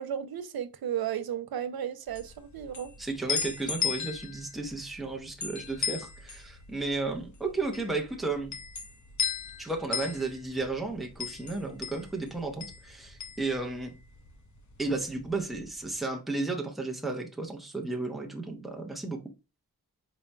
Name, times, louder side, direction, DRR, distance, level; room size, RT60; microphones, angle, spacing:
voice 1, 0.0-2.9, right 9 dB, 70° right, 0.6 m, -34 dB
sound 1, 2.1-14.3 14.6-15.7, left 7 dB, 50° left, 0.7 m, -36 dB
voice 2, 3.0-8.5 9.6-13.9 14.8-19.2, right 3 dB, ahead, 0.6 m, -33 dB
4.2 x 3.6 x 2.2 m
wide cardioid pair, 140°, 38 cm